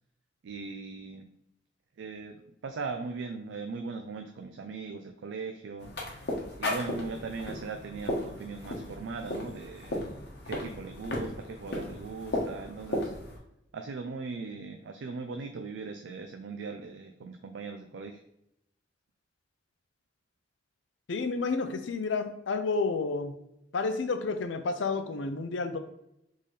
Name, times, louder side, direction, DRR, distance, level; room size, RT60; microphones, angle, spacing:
voice 1, 0.4-1.3 2.0-2.4 2.6-5.9 6.6-10.0 10.4-13.1 13.7-18.2, right 4 dB, 75° right, 5 dB, 0.4 m, -39 dB
sound 1, 5.8-13.4, left 1 dB, 60° left, 1.1 m, -35 dB
voice 2, 21.1-23.3 23.7-25.8, left 4 dB, 75° left, 8 dB, 0.5 m, -30 dB
4.1 x 3.6 x 3.2 m, 0.83 s
head